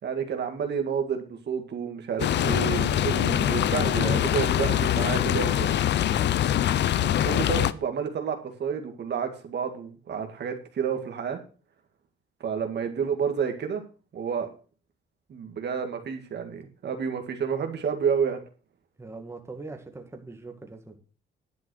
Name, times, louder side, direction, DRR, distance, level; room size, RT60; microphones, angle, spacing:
voice 1, 0.0-5.7 7.0-11.4 12.4-13.8 14.1-14.5 15.3-18.4, right 7 dB, 60° right, 5 dB, 2.1 m, -30 dB
sound 1, 2.2-7.7, left 11 dB, 60° left, 0.6 m, -24 dB
voice 2, 6.0-6.3 19.0-21.0, right 3 dB, 15° right, 4 dB, 2.0 m, -42 dB
11.0 x 6.0 x 6.4 m, 0.37 s
cardioid pair, 90°, 20 cm